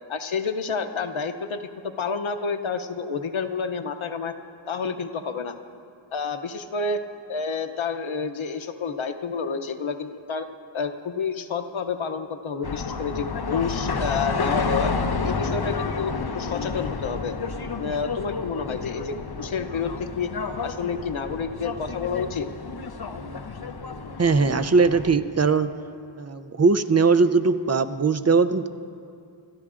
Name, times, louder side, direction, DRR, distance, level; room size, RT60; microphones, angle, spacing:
voice 1, 0.1-1.7 2.0-4.3 4.7-5.6 6.1-7.0 7.3-10.5 10.7-14.9 15.2-17.4 17.8-20.3 20.6-22.5, left 5 dB, 85° left, 7 dB, 0.7 m, -29 dB
sound 1, 12.6-25.2, left 4 dB, 55° left, 0.7 m, -30 dB
voice 2, 24.2-25.7 26.2-28.7, right 4 dB, 35° right, 11 dB, 0.5 m, -20 dB
27.0 x 13.0 x 2.5 m, 2.4 s
wide cardioid pair, 45°, 46 cm